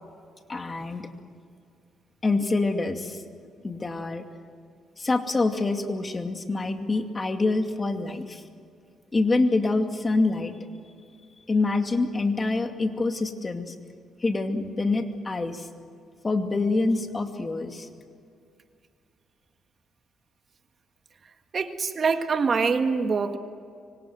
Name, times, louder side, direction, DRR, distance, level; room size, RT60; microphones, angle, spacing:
voice 1, 0.5-1.1 2.2-3.2 3.6-4.2 5.0-8.4 9.1-10.5 11.5-13.7 14.2-15.7 16.2-17.9, left 3 dB, 25° left, 6 dB, 2.4 m, -26 dB
voice 2, 21.5-23.4, right 5 dB, 45° right, 7 dB, 1.7 m, -24 dB
25.5 x 24.5 x 8.0 m, 2.3 s
cardioid pair, 90°, 0 cm